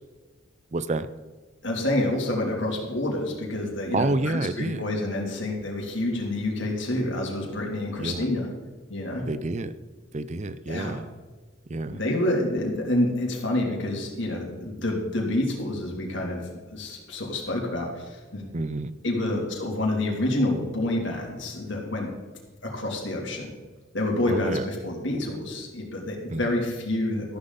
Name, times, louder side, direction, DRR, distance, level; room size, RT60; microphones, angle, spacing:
voice 1, 0.7-1.1 3.9-4.8 8.0-8.3 9.2-9.7 10.1-11.0 11.7-12.0 18.5-18.9 24.3-24.6 26.3-26.4, right 2 dB, 35° right, 14 dB, 0.5 m, -28 dB
voice 2, 1.6-8.5 8.9-9.3 10.7-11.0 11.9-18.4 19.0-22.1 22.6-23.5 23.9-27.4, left 1 dB, 60° left, -1 dB, 3.2 m, -28 dB
13.5 x 12.0 x 4.2 m, 1.3 s
head